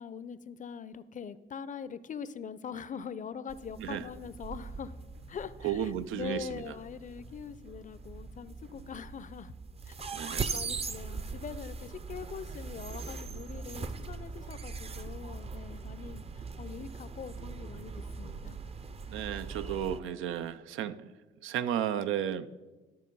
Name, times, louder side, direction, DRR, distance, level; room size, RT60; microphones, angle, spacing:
voice 1, 0.0-4.9 5.3-9.5 9.8-18.6, left 7 dB, 40° left, 16 dB, 0.5 m, -43 dB
sound 1, 3.5-20.0, right 4 dB, 30° right, 0.6 m, -41 dB
sound 2, 3.8-8.9, equal, 65° right, 3.8 m, -59 dB
voice 2, 5.6-6.6 10.1-10.5 19.1-21.1 21.4-22.5, right 10 dB, 90° right, 12 dB, 0.5 m, -33 dB
12.5 x 6.3 x 5.4 m, 1.2 s
cardioid pair, 90°, 20 cm